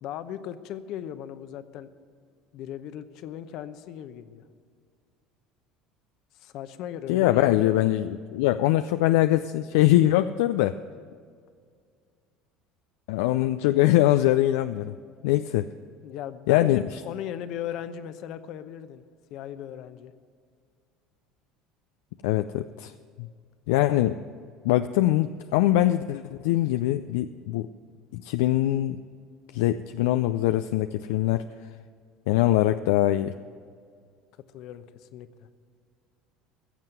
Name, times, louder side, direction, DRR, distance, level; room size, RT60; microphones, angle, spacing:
voice 1, 0.0-1.9 2.5-4.4 6.3-7.7 16.0-19.0 19.3-20.1 34.5-35.5, left 10 dB, 65° left, 11 dB, 0.8 m, -37 dB
voice 2, 7.1-10.8 13.1-15.0 15.2-15.7 16.5-17.0 22.2-22.9 23.2-23.3 23.7-24.2 24.6-27.7 28.1-29.0 29.5-31.4 32.3-33.3, left 14 dB, 80° left, 10 dB, 0.4 m, -23 dB
15.5 x 7.5 x 8.0 m, 2.1 s
supercardioid pair, 85°, 0 cm